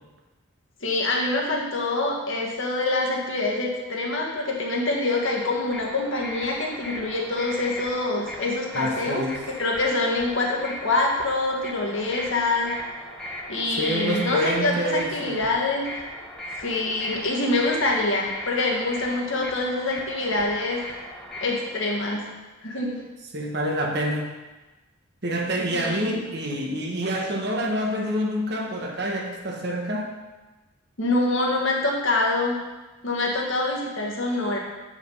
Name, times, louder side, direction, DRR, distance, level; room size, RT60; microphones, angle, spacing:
voice 1, 0.8-9.2 9.6-12.7 13.5-15.9 16.6-20.8 21.4-22.3 22.6-23.0 25.7-26.2 31.0-32.6 33.0-34.6, left 2 dB, 60° left, -2 dB, 1.6 m, -25 dB
sound 1, 5.1-22.2, equal, 5° left, 1.3 m, -38 dB
voice 2, 8.7-9.4 13.8-15.4 23.3-24.3 25.2-30.1, equal, 50° right, 1 dB, 1.2 m, -27 dB
8.6 x 5.2 x 5.5 m, 1.2 s
head